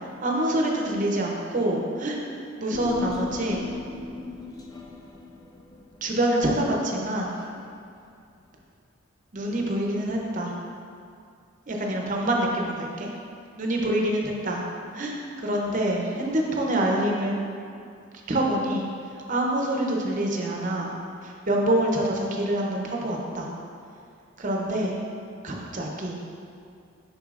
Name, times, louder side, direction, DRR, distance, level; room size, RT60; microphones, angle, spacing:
voice 1, 0.2-2.2 2.6-3.6 6.0-7.3 9.3-10.5 11.7-13.1 13.6-14.6 14.9-17.3 18.3-18.9 19.3-20.9 21.2-23.5 24.4-25.0 25.4-26.2, right 1 dB, 40° right, -1 dB, 0.7 m, -26 dB
Human voice, 2.7-7.3 7.6-7.7, left 3 dB, 20° left, 0.4 m, -36 dB
7.2 x 5.4 x 2.5 m, 2.4 s
head